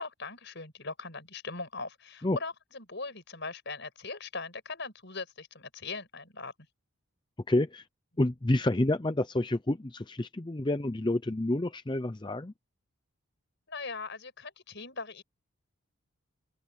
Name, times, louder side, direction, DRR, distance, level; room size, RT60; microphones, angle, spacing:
voice 1, 0.0-6.5 13.7-15.2, left 3 dB, 55° left, 5.7 m, -40 dB
voice 2, 7.5-7.8 8.2-12.5, left 1 dB, 20° left, 0.6 m, -28 dB
open air
head